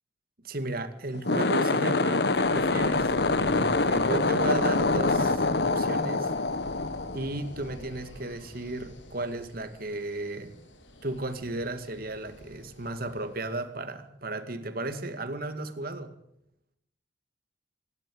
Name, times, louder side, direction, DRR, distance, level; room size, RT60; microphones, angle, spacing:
voice 1, 0.4-6.3 7.1-10.5 11.0-16.1, right 2 dB, 50° right, 2.3 m, -34 dB
sound 1, 1.1-7.7, left 3 dB, 60° left, 1.1 m, -25 dB
sound 2, 1.7-13.5, equal, 85° left, 3.6 m, -48 dB
26.0 x 12.0 x 9.3 m
head